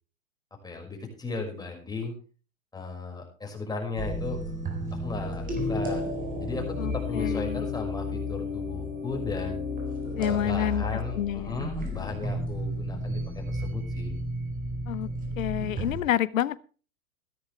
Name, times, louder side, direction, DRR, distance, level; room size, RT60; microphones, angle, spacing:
voice 1, 0.6-2.2 2.7-4.4 4.9-6.0 6.4-9.6 10.2-14.1, left 3 dB, 10° left, 5.7 m, -36 dB
sound 1, 4.0-16.0, left 1 dB, 20° right, 4.1 m, -32 dB
voice 2, 6.8-7.7 10.2-10.8 11.2-11.6 14.9-15.1 15.4-16.6, left 12 dB, 70° left, 0.9 m, -28 dB
16.0 x 13.0 x 3.4 m
hypercardioid pair, 105°, 42 cm